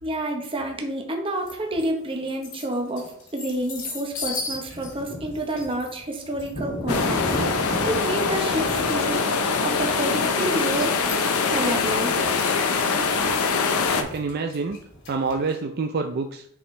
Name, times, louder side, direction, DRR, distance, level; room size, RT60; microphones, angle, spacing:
voice 1, 0.0-7.2 7.5-9.2 9.6-10.9 11.5-12.1, right 1 dB, 25° right, 2 dB, 0.9 m, -29 dB
sound 1, 1.5-1.9 2.3-15.5, left 1 dB, 60° left, 2.2 m, -35 dB
sound 2, 6.9-14.0, left 4 dB, 85° left, 0.7 m, -23 dB
voice 2, 14.0-14.8 15.1-16.5, right 4 dB, 45° right, 5 dB, 0.4 m, -27 dB
7.0 x 5.1 x 3.2 m, 0.67 s
head